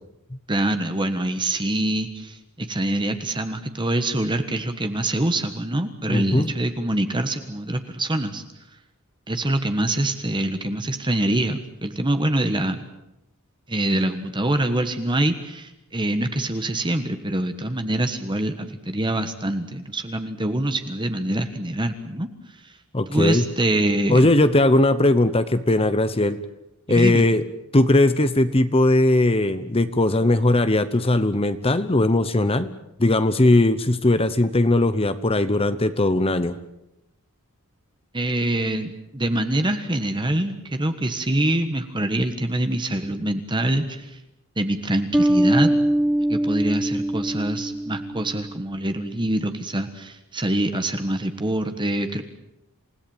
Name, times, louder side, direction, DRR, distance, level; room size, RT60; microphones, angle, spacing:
voice 1, 0.5-8.4 9.3-12.8 13.7-22.8 23.1-24.3 26.9-27.2 38.1-44.2 44.6-45.7 46.3-52.2, right 1 dB, 20° right, 8 dB, 1.4 m, -25 dB
voice 2, 6.1-6.5 22.9-23.4 24.1-26.4 26.9-27.4 27.7-32.7 33.0-36.6, left 2 dB, 25° left, 12 dB, 1.0 m, -19 dB
Bass guitar, 45.1-48.6, right 1 dB, 5° right, 0.9 m, -22 dB
28.0 x 17.5 x 8.9 m, 0.89 s
head